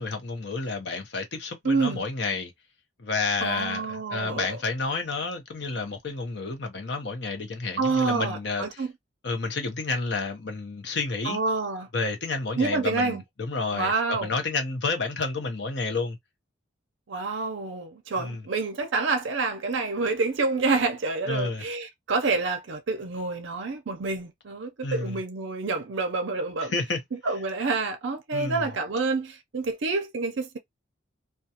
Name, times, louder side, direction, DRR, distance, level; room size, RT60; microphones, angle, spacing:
voice 1, 0.0-2.5 3.0-8.8 9.2-11.4 11.9-16.2 18.2-18.4 21.3-21.6 24.8-25.2 26.6-27.0 28.3-28.7, left 3 dB, 60° left, 0.7 m, -30 dB
voice 2, 1.6-2.0 3.4-4.5 7.8-8.9 11.2-11.9 12.6-13.2 13.7-14.3 17.1-26.8 27.2-30.6, right 3 dB, 65° right, 0.5 m, -28 dB
2.3 x 2.2 x 2.8 m
head